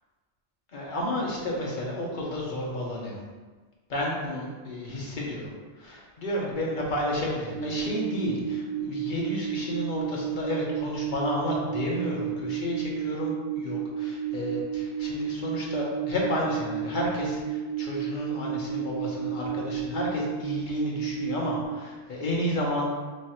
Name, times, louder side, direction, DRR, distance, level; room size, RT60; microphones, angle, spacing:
voice 1, 0.7-3.2 3.9-5.5 5.8-22.9, left 1 dB, 50° left, -3 dB, 0.9 m, -31 dB
sound 1, 7.5-21.7, right 8 dB, 85° right, 1.2 m, -32 dB
3.1 x 2.5 x 4.3 m, 1.4 s
omnidirectional pair, 1.2 m